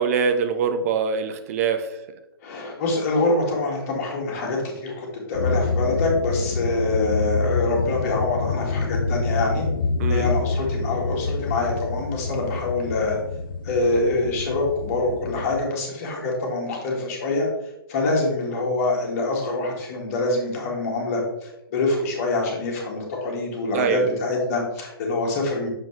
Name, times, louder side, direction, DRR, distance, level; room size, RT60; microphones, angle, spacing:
voice 1, 0.0-1.9 10.0-10.3 23.7-24.1, right 6 dB, 35° right, 9 dB, 0.7 m, -23 dB
voice 2, 2.4-9.7 10.1-13.2 13.6-17.5 17.9-25.7, left 2 dB, 40° left, -1 dB, 1.9 m, -25 dB
sound 1, 5.3-15.6, left 3 dB, 60° left, 0.4 m, -27 dB
6.8 x 5.1 x 3.2 m, 0.88 s
figure-of-eight pair, 120°, 13 cm